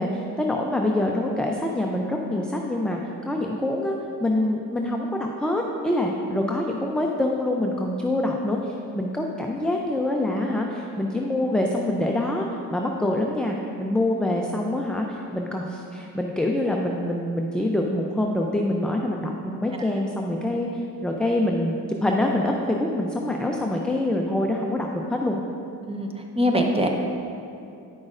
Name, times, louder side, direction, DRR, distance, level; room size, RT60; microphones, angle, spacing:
voice 1, 0.0-3.9 4.2-21.8 22.0-25.4, left 1 dB, ahead, 0 dB, 0.4 m, -25 dB
voice 2, 25.9-26.9, equal, 15° right, 2 dB, 0.8 m, -24 dB
9.7 x 6.1 x 2.5 m, 2.6 s
cardioid pair, 85°, 38 cm